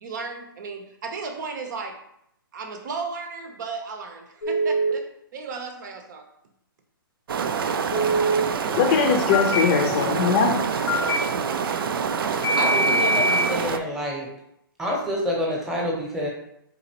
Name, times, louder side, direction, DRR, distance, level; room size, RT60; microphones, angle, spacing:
voice 1, 0.0-2.0 2.5-6.3, right 4 dB, 55° right, 5 dB, 0.8 m, -35 dB
Telephone, 4.4-4.9 7.9-8.4 9.3-9.6 10.9-11.2 12.4-13.5, right 1 dB, 85° left, 0.9 m, -22 dB
sound 1, 7.3-13.8, right 6 dB, 75° right, 0.4 m, -26 dB
voice 2, 8.7-10.7, left 5 dB, 35° left, 4 dB, 0.6 m, -21 dB
voice 3, 12.6-14.3 14.8-16.3, equal, 5° right, -3 dB, 0.9 m, -27 dB
4.0 x 4.0 x 2.9 m, 0.76 s
hypercardioid pair, 150°, 12 cm